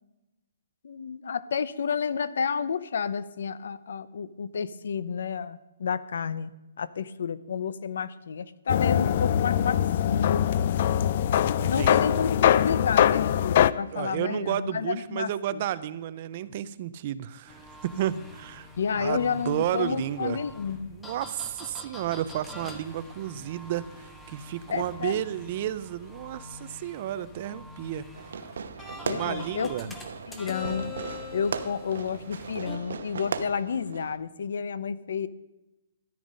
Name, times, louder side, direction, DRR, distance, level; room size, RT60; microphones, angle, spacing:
voice 1, 0.8-6.5 6.8-10.5 11.7-15.6 18.8-20.9 24.7-25.2 29.0-29.9 30.3-30.9 31.3-35.3, left 6 dB, 70° left, 17 dB, 0.7 m, -30 dB
sound 1, 8.7-13.7, left 10 dB, 40° left, 0.4 m, -22 dB
voice 2, 11.6-12.2 13.9-20.4 20.9-28.0 29.1-29.9, right 11 dB, 35° right, 15 dB, 0.5 m, -32 dB
sound 2, 17.5-32.8, left 2 dB, 5° left, 1.1 m, -44 dB
Fireworks, 28.1-34.2, right 5 dB, 70° right, 1.0 m, -37 dB
13.5 x 10.5 x 5.2 m, 1.0 s
hypercardioid pair, 170°, 0 cm